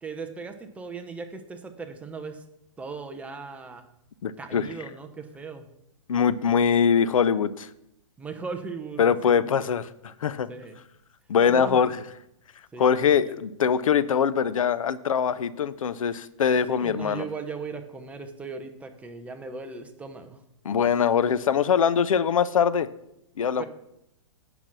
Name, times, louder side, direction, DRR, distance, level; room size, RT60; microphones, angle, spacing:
voice 1, 0.0-2.4 2.8-3.8 4.4-5.6 8.2-9.5 10.5-10.8 11.5-11.8 12.7-13.3 16.7-20.4 23.6-23.7, right 4 dB, 10° right, 6 dB, 0.8 m, -38 dB
voice 2, 4.2-4.7 6.1-7.7 9.0-10.5 11.3-11.9 12.8-17.2 20.6-22.9 23.4-23.6, left 7 dB, 90° left, 16 dB, 0.7 m, -23 dB
9.0 x 5.9 x 6.1 m, 0.80 s
hypercardioid pair, 145°, 17 cm